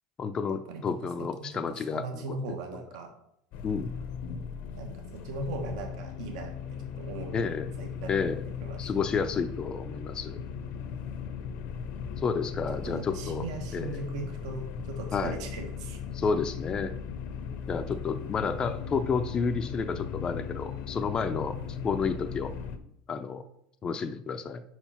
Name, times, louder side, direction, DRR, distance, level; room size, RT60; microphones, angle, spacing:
voice 1, 0.2-2.8 3.6-4.0 7.3-7.7 8.1-8.4 8.8-10.4 12.2-13.5 13.7-14.0 15.1-15.4 16.1-16.9 17.7-22.5 23.1-23.4 23.8-24.6, left 5 dB, 25° left, 7 dB, 0.4 m, -31 dB
voice 2, 1.2-3.1 4.7-6.5 7.0-8.1 8.6-8.9 12.8-16.0, right 3 dB, 80° right, 4 dB, 1.2 m, -39 dB
sound 1, 3.5-22.8, left 7 dB, 55° left, 0.7 m, -38 dB
4.9 x 4.5 x 5.6 m, 0.75 s
supercardioid pair, 125°, 3 cm